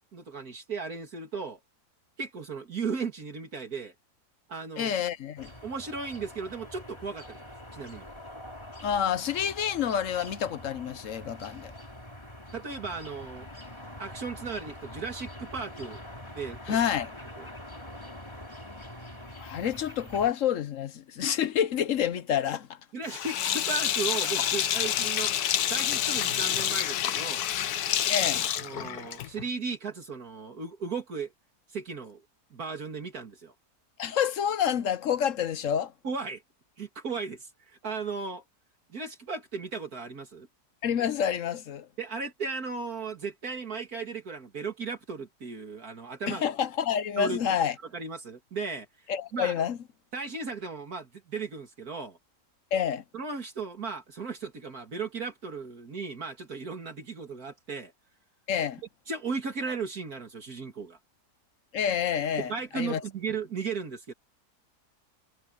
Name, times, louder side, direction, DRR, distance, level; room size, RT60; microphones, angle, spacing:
voice 1, 0.1-1.6 2.2-3.9 4.5-4.9 5.6-7.4 7.7-8.1 12.5-13.5 14.0-16.0 16.3-16.8 17.4-17.5 22.9-25.3 25.7-27.5 28.3-31.3 31.7-32.2 32.5-33.5 36.0-36.4 36.8-38.4 38.9-40.5 42.0-46.4 47.2-47.5 47.9-48.9 49.3-49.5 50.1-52.2 53.1-57.9 59.1-61.0 62.4-64.1, right 4 dB, 65° right, 2.8 m, -36 dB
voice 2, 4.8-5.5 8.8-11.7 16.7-17.1 19.4-22.8 28.1-28.4 34.0-35.9 40.8-41.9 46.3-47.7 49.1-49.8 52.7-53.0 58.5-58.8 61.7-63.0, left 8 dB, 60° left, 1.1 m, -28 dB
sound 1, 5.4-20.3, left 1 dB, 15° left, 3.5 m, -45 dB
Sink (filling or washing), 23.1-29.5, left 10 dB, 75° left, 1.3 m, -28 dB
omnidirectional pair, 1.7 m